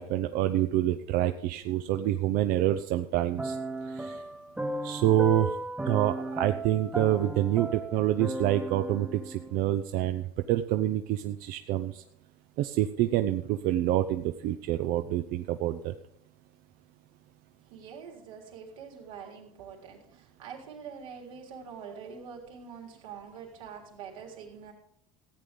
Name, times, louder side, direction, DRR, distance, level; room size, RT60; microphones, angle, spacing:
voice 1, 0.0-3.6 3.9-4.2 4.8-5.6 5.9-12.0 12.6-15.9, right 13 dB, 60° right, 9 dB, 0.7 m, -27 dB
sound 1, 3.4-9.7, right 2 dB, 5° right, 1.0 m, -36 dB
voice 2, 17.6-24.7, right 6 dB, 85° right, 0 dB, 3.6 m, -45 dB
15.0 x 8.5 x 5.2 m, 0.74 s
supercardioid pair, 95°, 17 cm